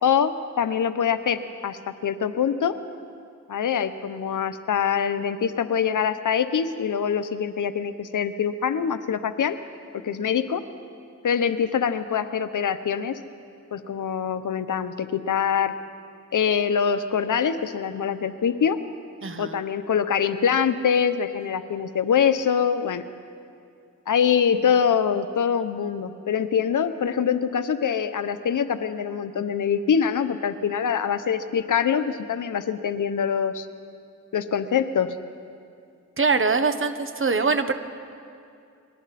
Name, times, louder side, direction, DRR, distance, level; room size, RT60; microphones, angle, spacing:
voice 1, 0.0-2.7 3.5-9.6 9.9-10.6 11.2-13.2 13.7-15.7 16.3-18.8 19.4-23.0 24.1-33.7 34.3-35.1, left 7 dB, 85° left, 11 dB, 0.9 m, -24 dB
voice 2, 19.2-19.6 36.2-37.7, right 4 dB, 40° right, 9 dB, 1.3 m, -23 dB
29.5 x 21.5 x 4.2 m, 2.4 s
wide cardioid pair, 90°, 30 cm